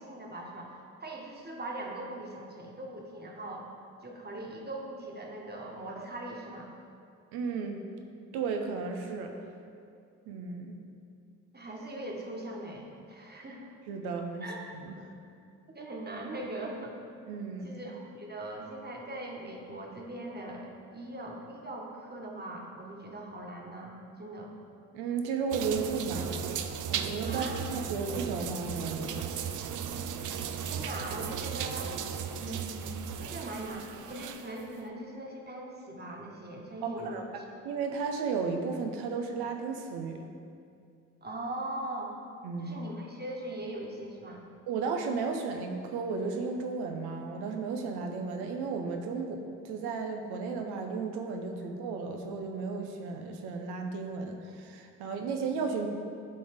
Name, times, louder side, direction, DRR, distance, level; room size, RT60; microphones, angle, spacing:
voice 1, 0.0-3.7 4.0-6.7 11.5-13.7 14.4-14.6 15.7-17.0 17.6-24.5 27.3-27.6 30.6-31.9 32.4-37.3 41.2-42.1 42.6-44.4, right 1 dB, 25° right, -1 dB, 1.5 m, -40 dB
voice 2, 7.3-7.9 8.3-9.3 10.3-10.8 13.9-14.4 14.7-15.0 17.3-17.8 24.9-26.5 26.9-29.2 36.8-37.2 37.6-40.3 42.4-42.8 44.7-49.4 49.6-55.9, right 5 dB, 75° right, 4 dB, 0.9 m, -34 dB
sound 1, 25.5-34.6, right 7 dB, 50° right, 0.6 m, -36 dB
11.5 x 3.9 x 3.6 m, 2.4 s
hypercardioid pair, 45°, 39 cm